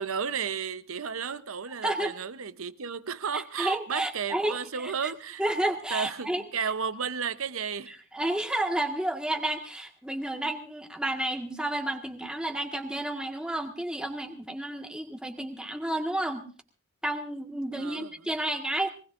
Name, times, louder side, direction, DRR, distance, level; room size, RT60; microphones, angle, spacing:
voice 1, 0.0-5.4 5.9-7.9 17.8-18.1, right 6 dB, 75° right, 0.8 m, -33 dB
voice 2, 1.8-2.1 3.3-4.6 4.8-4.9 5.4-6.4 8.1-16.5 17.0-18.9, right 1 dB, 5° right, 1.6 m, -31 dB
23.5 x 19.5 x 2.5 m
head